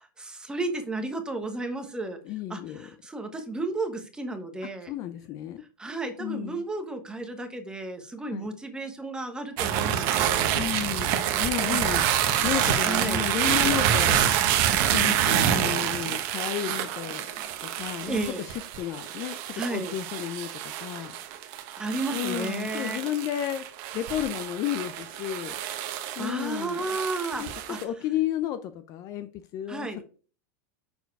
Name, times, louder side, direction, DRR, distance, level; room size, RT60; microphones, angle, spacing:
voice 1, 0.2-2.2 2.5-4.9 5.8-10.6 11.7-11.8 12.8-13.2 18.1-18.4 19.6-19.9 21.8-23.0 25.9-27.4 27.7-27.8 29.7-30.0, right 2 dB, 10° right, 1.1 m, -33 dB
voice 2, 2.2-2.9 4.9-5.6 6.2-6.7 8.3-8.5 10.5-12.0 12.4-14.2 14.9-21.1 22.1-23.7 23.9-25.6 26.2-26.8 27.4-30.0, left 12 dB, 35° left, 0.5 m, -32 dB
sound 1, 9.6-27.8, right 10 dB, 45° right, 1.1 m, -27 dB
6.8 x 4.6 x 4.6 m
supercardioid pair, 150°, 11 cm